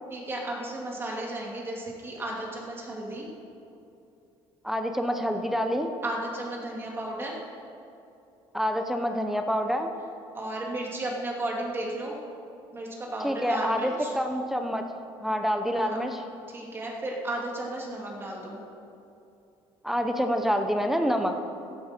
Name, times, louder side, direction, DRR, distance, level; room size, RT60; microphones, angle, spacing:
voice 1, 0.1-3.2 6.0-7.3 10.3-12.1 12.7-14.1 15.8-16.0 16.5-18.6, right 1 dB, 20° right, -2 dB, 2.6 m, -34 dB
voice 2, 4.6-5.9 8.5-9.9 13.2-14.8 15.2-16.2 19.8-21.4, equal, 5° right, 5 dB, 0.8 m, -27 dB
15.5 x 10.5 x 4.5 m, 2.7 s
cardioid pair, 125°, 10 cm